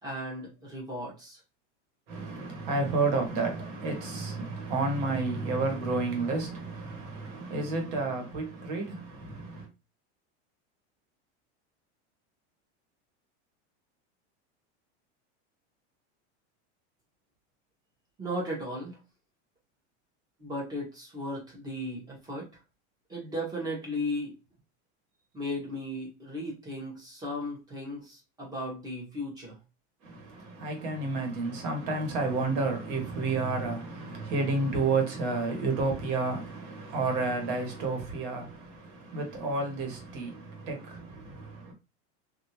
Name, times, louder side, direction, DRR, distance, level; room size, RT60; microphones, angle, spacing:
voice 1, 0.0-1.4 18.2-19.0 20.4-22.5 23.1-24.4 25.3-29.5, left 1 dB, 10° right, 1.0 m, -36 dB
voice 2, 2.1-9.7 30.0-41.7, right 3 dB, 50° right, 1.4 m, -31 dB
3.3 x 2.7 x 2.9 m
supercardioid pair, 175°, 34 cm